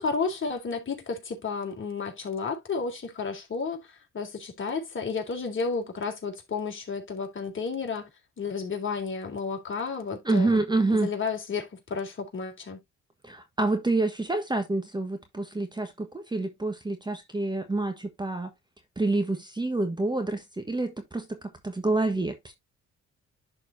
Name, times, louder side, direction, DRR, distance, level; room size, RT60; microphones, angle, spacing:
voice 1, 0.0-3.8 4.1-8.1 8.4-10.6 11.0-12.8, left 5 dB, 40° left, 3.5 m, -32 dB
voice 2, 10.2-11.1 13.2-18.5 19.0-22.5, right 2 dB, 15° right, 1.3 m, -27 dB
11.5 x 4.3 x 2.7 m
cardioid pair, 90°, 30 cm